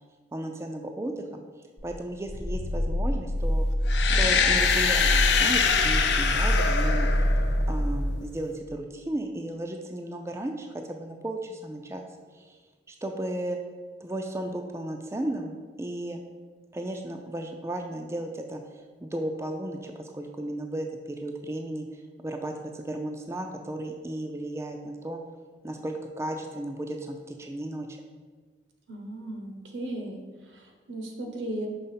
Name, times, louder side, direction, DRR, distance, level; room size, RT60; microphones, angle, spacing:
voice 1, 0.3-1.4 1.8-3.7 4.2-7.2 7.7-12.1 12.3-12.6 12.9-13.6 14.0-16.2 16.7-25.2 25.6-28.0, right 1 dB, 15° right, 3 dB, 0.3 m, -34 dB
Growling, 1.8-8.1, equal, 30° left, 0.8 m, -26 dB
sound 1, 3.9-7.8, left 6 dB, 70° left, 0.5 m, -24 dB
voice 2, 28.9-30.2 30.5-31.7, right 1 dB, 85° right, 2 dB, 1.1 m, -36 dB
5.4 x 3.5 x 5.6 m, 1.4 s
head